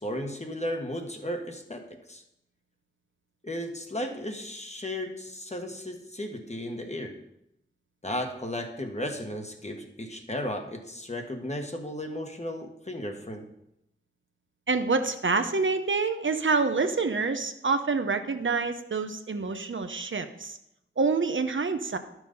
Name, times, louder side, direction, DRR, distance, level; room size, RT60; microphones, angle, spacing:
voice 1, 0.0-2.2 3.4-7.2 8.0-13.5, left 1 dB, 30° left, 4 dB, 1.5 m, -35 dB
voice 2, 14.7-20.6 21.0-22.0, right 4 dB, 65° right, 8 dB, 0.8 m, -27 dB
11.0 x 6.1 x 5.3 m, 0.82 s
wide cardioid pair, 50°, 21 cm